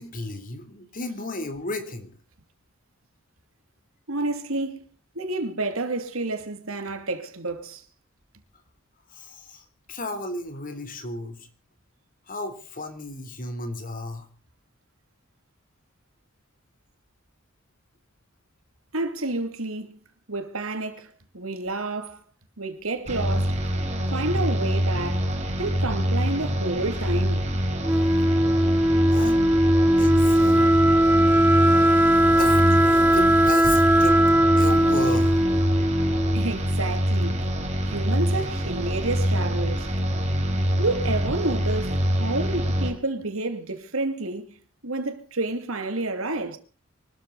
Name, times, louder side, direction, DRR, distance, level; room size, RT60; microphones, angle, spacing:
voice 1, 0.0-2.1 9.1-11.5 12.3-14.3 29.1-29.5 29.8-30.7 32.2-34.2 34.6-35.4, left 2 dB, 45° left, 3.5 m, -34 dB
voice 2, 4.1-4.8 5.1-7.8 18.9-20.0 20.3-22.2 22.6-23.6 24.1-25.3 25.6-27.5 32.2-32.3 36.3-37.5 37.8-39.9 40.8-44.5 44.8-46.6, right 2 dB, 85° right, 2.7 m, -29 dB
sound 1, 23.1-42.9, equal, 35° right, 4.7 m, -25 dB
Wind instrument woodwind instrument, 27.8-36.6, right 1 dB, 10° right, 0.9 m, -19 dB
24.5 x 13.0 x 4.1 m
head